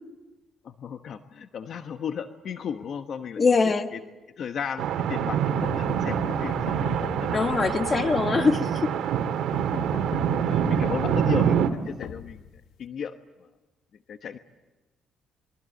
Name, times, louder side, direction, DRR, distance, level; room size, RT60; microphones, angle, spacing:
voice 1, 0.6-4.0 4.4-6.8 7.2-7.6 9.4-9.8 10.5-12.4 12.8-13.1 13.4-13.5 14.1-14.4, left 7 dB, 60° left, 1.1 m, -35 dB
voice 2, 3.4-3.9 7.3-8.9, left 4 dB, 35° left, 1.6 m, -23 dB
sound 1, 4.8-11.7, right 8 dB, 80° right, 1.8 m, -26 dB
sound 2, 5.6-8.6 9.5-12.9, left 9 dB, 85° left, 1.0 m, -39 dB
28.0 x 23.0 x 7.9 m
cardioid pair, 90°, 0 cm